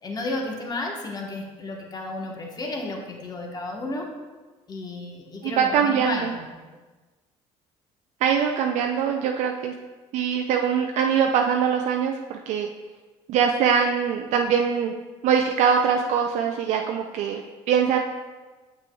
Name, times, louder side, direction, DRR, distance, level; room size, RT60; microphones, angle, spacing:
voice 1, 0.0-4.1 4.7-6.5, left 2 dB, 30° left, 0 dB, 1.2 m, -32 dB
voice 2, 5.4-6.3 8.2-9.7 10.1-12.7 13.3-14.9 15.2-17.4 17.7-18.0, right 7 dB, 70° right, 2 dB, 0.4 m, -22 dB
7.5 x 5.9 x 2.3 m, 1.3 s
supercardioid pair, 85°, 13 cm